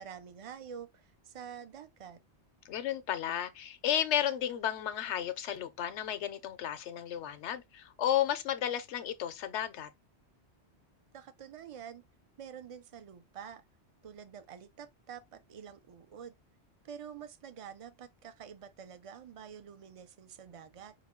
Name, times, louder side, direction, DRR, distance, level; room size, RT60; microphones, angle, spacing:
voice 1, 0.0-2.2 11.1-12.1 12.4-13.6 14.0-16.4 16.8-20.9, right 8 dB, 45° right, 0.5 m, -47 dB
voice 2, 2.6-9.9, left 10 dB, 85° left, 1.0 m, -33 dB
4.9 x 2.2 x 3.6 m
omnidirectional pair, 1.1 m